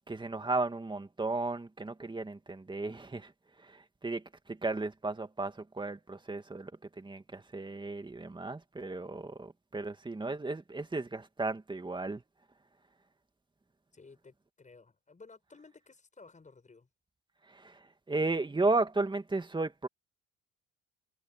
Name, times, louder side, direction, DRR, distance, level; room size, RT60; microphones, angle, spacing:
voice 1, 0.1-3.3 3.6-6.7 7.0-12.2 17.5-19.9, right 3 dB, 15° right, 2.3 m, -34 dB
voice 2, 13.9-16.9, left 4 dB, 25° left, 6.7 m, -55 dB
cardioid pair, 95°, 32 cm